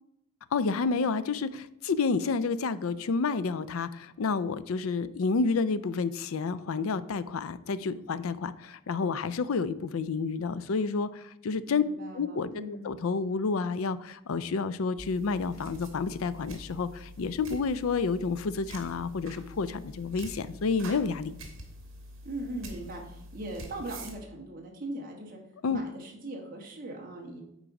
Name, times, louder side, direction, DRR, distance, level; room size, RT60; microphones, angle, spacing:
voice 1, 0.5-11.8 12.1-21.3 25.6-25.8, left 4 dB, 90° left, 15 dB, 0.5 m, -30 dB
voice 2, 11.7-12.9 22.2-25.4 25.7-27.4, right 1 dB, 45° right, -1 dB, 1.5 m, -40 dB
sound 1, 15.0-24.2, right 1 dB, 75° right, 1.6 m, -46 dB
9.0 x 4.0 x 4.8 m, 0.85 s
head